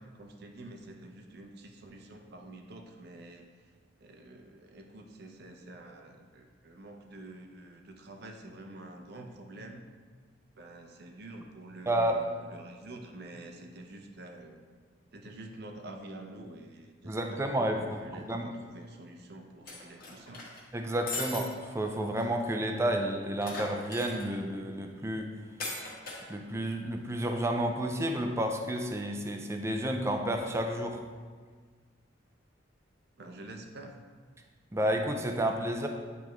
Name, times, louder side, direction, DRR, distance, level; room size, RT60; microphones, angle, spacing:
voice 1, 0.0-3.5 4.0-9.8 10.6-14.6 15.1-20.4 33.2-34.0, right 1 dB, 55° right, 3 dB, 0.6 m, -48 dB
voice 2, 11.9-12.2 17.0-18.5 20.7-25.3 26.3-31.0 34.7-35.9, right 1 dB, 15° right, 3 dB, 0.4 m, -31 dB
sound 1, 19.7-20.6 21.1-21.4 21.8-21.9 22.2-22.3 23.4-24.3 25.6-26.2, left 2 dB, 50° left, 1.3 m, -38 dB
8.8 x 3.4 x 3.1 m, 1.5 s
head